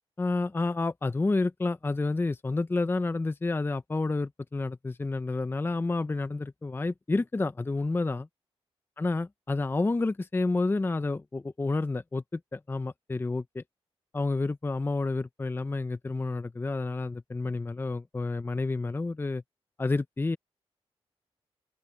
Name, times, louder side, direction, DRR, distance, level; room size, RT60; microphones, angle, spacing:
voice 1, 0.2-8.3 9.0-13.6 14.1-19.4 19.8-20.4, left 3 dB, 20° left, 0.6 m, -29 dB
open air
cardioid pair, 90°, 10 cm